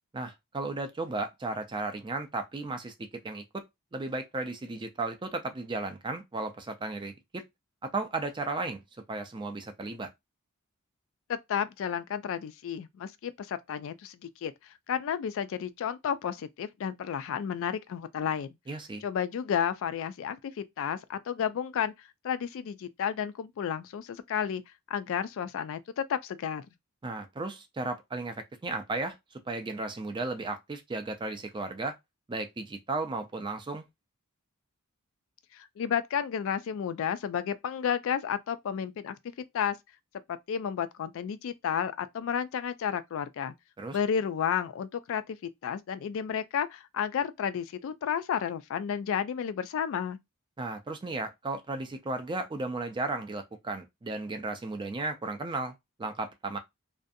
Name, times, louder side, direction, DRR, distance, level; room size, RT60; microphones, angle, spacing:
voice 1, 0.1-2.9 3.2-3.6 3.9-7.4 7.8-8.8 9.1-10.1 18.7-19.0 27.0-29.2 29.5-31.9 32.3-33.9 43.8-44.0 50.6-56.6, right 3 dB, 20° right, 0.4 m, -35 dB
voice 2, 11.3-14.5 14.9-18.5 19.0-21.9 22.2-24.6 24.9-26.7 35.5-39.2 39.5-39.8 40.3-43.5 43.9-45.4 45.6-50.2, left 8 dB, 60° left, 0.3 m, -32 dB
2.5 x 2.3 x 2.5 m
head